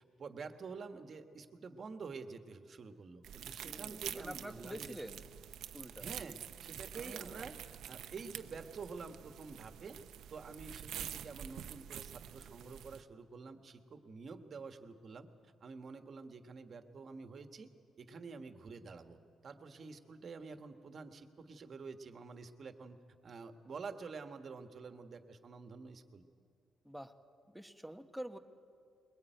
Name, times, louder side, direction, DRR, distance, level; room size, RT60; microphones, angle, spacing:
voice 1, 0.0-5.0 6.0-10.0 10.3-15.3 15.6-17.7 18.0-23.0 23.2-26.2, right 4 dB, 50° right, 8 dB, 1.5 m, -48 dB
sound 1, 3.2-13.0, right 10 dB, 80° right, 0.8 m, -47 dB
voice 2, 3.6-5.2 5.7-6.1 6.9-7.4 26.8-27.2 27.5-28.4, equal, ahead, 6 dB, 1.3 m, -47 dB
22.0 x 20.0 x 9.2 m, 2.4 s
cardioid pair, 90°, 0 cm